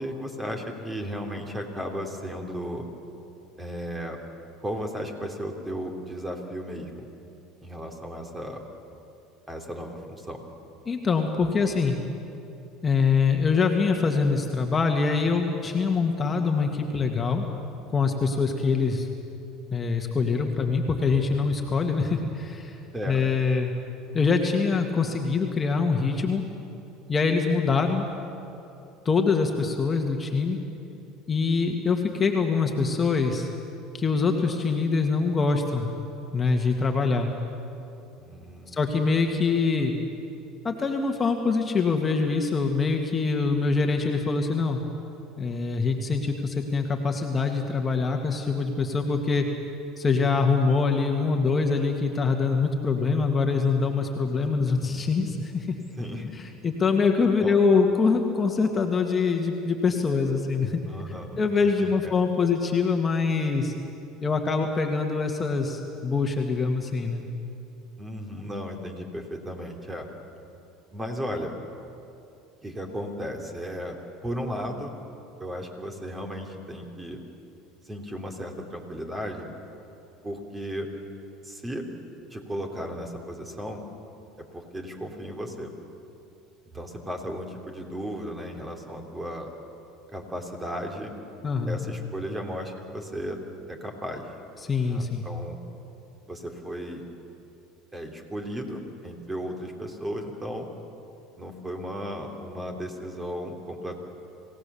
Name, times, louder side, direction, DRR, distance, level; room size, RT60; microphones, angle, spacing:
voice 1, 0.0-2.9 3.6-4.2 4.6-7.1 7.6-8.6 9.5-10.4 22.9-23.2 38.2-38.8 56.0-56.3 57.4-57.6 60.9-61.4 61.8-62.1 68.0-70.1 70.9-71.5 72.6-75.0 75.4-77.2 77.9-79.5 80.2-80.9 81.4-81.9 82.3-83.8 84.5-85.7 86.7-89.5 90.1-91.1 91.7-93.4 93.7-94.2 94.8-95.6 96.3-97.1 97.9-100.7 101.4-104.0, equal, 15° right, 3 dB, 3.5 m, -35 dB
voice 2, 10.9-12.0 12.8-17.4 17.9-19.1 19.7-22.8 23.1-23.7 24.1-26.4 27.1-28.0 29.1-30.6 31.3-33.5 33.9-35.9 36.3-37.3 38.7-39.9 40.6-44.8 45.4-49.5 50.0-55.8 56.4-60.8 61.4-63.7 64.2-67.3 91.4-91.8 94.6-95.2, left 4 dB, 25° left, 3 dB, 2.0 m, -24 dB
27.0 x 17.0 x 7.1 m, 2.7 s
hypercardioid pair, 85°, 0 cm